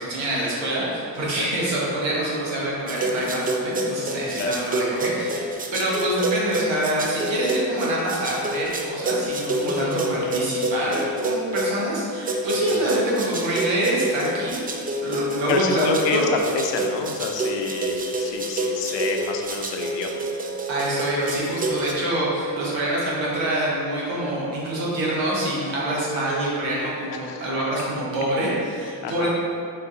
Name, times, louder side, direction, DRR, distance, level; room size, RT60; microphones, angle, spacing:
voice 1, 0.0-16.3 20.7-29.4, right 1 dB, 85° right, -5 dB, 1.2 m, -26 dB
sound 1, 2.9-11.8 12.3-21.9, right 1 dB, 20° right, 0.4 m, -27 dB
sound 2, 4.4-7.3, left 2 dB, 30° left, 0.5 m, -37 dB
voice 2, 15.5-20.3 26.8-27.5 29.0-29.4, left 4 dB, 70° left, 4 dB, 0.6 m, -28 dB
4.5 x 3.8 x 2.5 m, 2.5 s
supercardioid pair, 65°, 44 cm